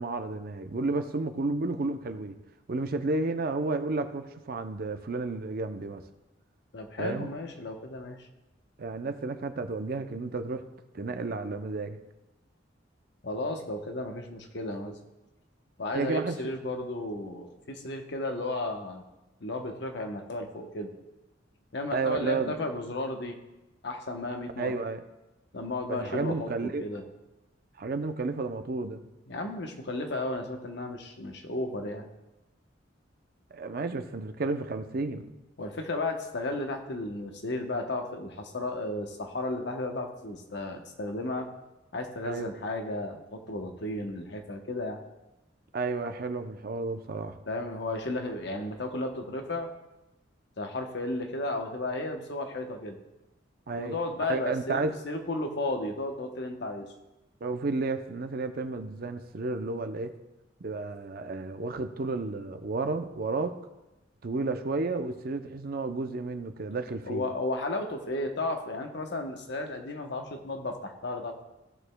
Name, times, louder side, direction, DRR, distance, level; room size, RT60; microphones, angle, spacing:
voice 1, 0.0-2.3 2.7-6.0 7.0-7.3 8.8-10.6 10.9-12.0 15.9-16.4 21.9-22.5 24.6-25.0 25.9-26.8 27.8-29.0 33.5-35.3 42.2-42.5 45.7-47.4 53.7-54.0 54.3-54.9 57.4-60.1 60.6-63.5 64.2-67.2, right 3 dB, 50° right, 8 dB, 0.5 m, -32 dB
voice 2, 6.7-8.3 13.2-15.0 15.8-19.0 19.4-20.9 21.7-23.4 23.8-24.7 25.5-27.0 29.3-32.1 35.6-41.5 41.9-45.0 47.5-49.7 50.6-53.0 53.8-56.9 67.0-71.4, left 2 dB, 65° left, 4 dB, 0.9 m, -34 dB
15.5 x 6.5 x 2.2 m, 1.0 s
head